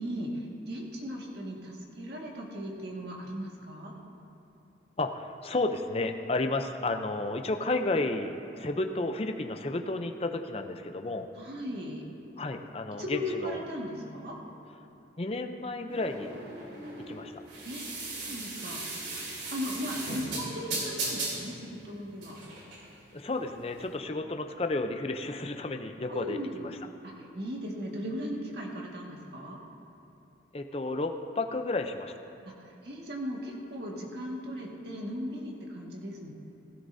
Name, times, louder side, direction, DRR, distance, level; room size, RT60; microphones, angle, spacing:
voice 1, 0.0-3.9 11.4-12.0 12.9-14.4 17.6-18.8 19.5-22.4 26.1-26.6 27.0-29.6 32.4-32.5 32.8-36.3, equal, 60° right, -2 dB, 1.8 m, -37 dB
voice 2, 5.0-11.3 12.4-13.6 15.2-16.3 17.1-17.4 23.1-26.8 30.5-32.2, left 2 dB, 30° left, 6 dB, 0.6 m, -32 dB
sound 1, 15.9-23.9, right 2 dB, 85° right, 3.2 m, -37 dB
16.0 x 16.0 x 2.7 m, 2.6 s
head